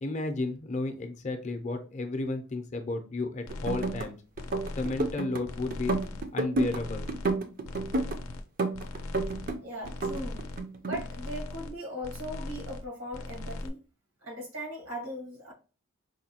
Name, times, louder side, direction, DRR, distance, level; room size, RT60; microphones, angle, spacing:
voice 1, 0.0-4.1 4.8-5.9 6.3-7.1, left 2 dB, 35° left, 0.5 m, -32 dB
sound 1, 3.5-4.0 4.3-5.2 5.4-6.3 6.5-7.4 7.6-8.4 8.7-9.6 9.8-10.6 10.9-11.8 12.0-12.9 13.1-13.7, left 2 dB, 85° left, 0.5 m, -39 dB
sound 2, 3.5-4.1 4.4-5.4 5.7-6.8 7.1-8.2 8.6-9.6 9.9-11.0, right 2 dB, 40° right, 0.4 m, -30 dB
voice 2, 9.6-10.5 10.8-13.8 14.2-15.5, equal, 90° right, 1.6 m, -39 dB
4.9 x 2.2 x 2.8 m
head